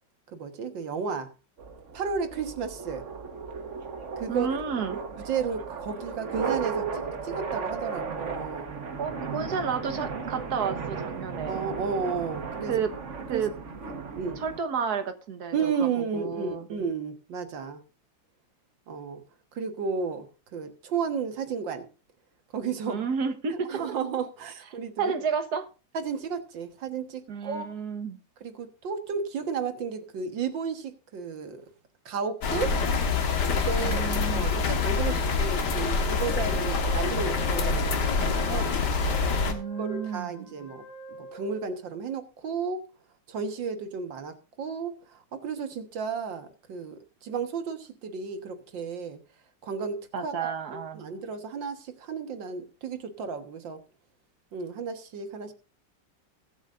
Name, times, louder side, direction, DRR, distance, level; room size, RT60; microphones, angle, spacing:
voice 1, 0.3-1.3 1.9-3.1 4.2-4.5 5.3-8.7 11.5-12.7 13.3-13.4 14.1-14.4 15.5-17.8 18.9-19.2 19.5-21.9 22.5-23.1 23.5-25.2 25.9-27.8 28.4-31.7 32.1-32.7 33.5-38.8 39.8-40.8 41.2-42.9 43.3-49.2 49.6-53.8 54.5-55.5, right 5 dB, 85° right, 8 dB, 2.2 m, -33 dB
sound 1, 1.6-14.6, right 5 dB, 45° right, 1.5 m, -35 dB
voice 2, 4.3-5.0 9.0-11.6 12.7-12.9 13.3-13.5 14.4-15.7 16.1-16.7 22.9-23.7 25.0-25.7 27.3-28.2 33.8-34.6 39.5-40.5 50.1-51.1, right 6 dB, 60° right, 8 dB, 1.8 m, -31 dB
sound 2, 32.4-39.5, left 4 dB, 70° left, 2.1 m, -26 dB
Wind instrument woodwind instrument, 36.2-41.8, equal, 40° left, 5.0 m, -44 dB
21.0 x 8.1 x 2.5 m, 0.33 s
omnidirectional pair, 2.0 m